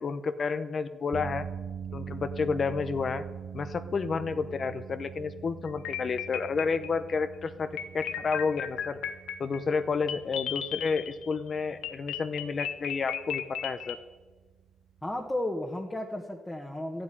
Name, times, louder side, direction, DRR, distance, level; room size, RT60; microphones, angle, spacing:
voice 1, 0.0-1.5 1.9-3.2 3.5-7.7 7.9-9.0 9.4-14.0, left 5 dB, 45° left, 11 dB, 0.8 m, -30 dB
sound 1, 1.1-15.4, right 7 dB, 55° right, 0.5 m, -44 dB
sound 2, 5.7-7.1 7.8-11.3 11.8-14.0, left 9 dB, 85° left, 1.0 m, -35 dB
voice 2, 15.0-17.0, left 1 dB, 10° left, 0 dB, 1.4 m, -33 dB
12.5 x 7.7 x 9.8 m, 1.3 s
cardioid pair, 90°, 0 cm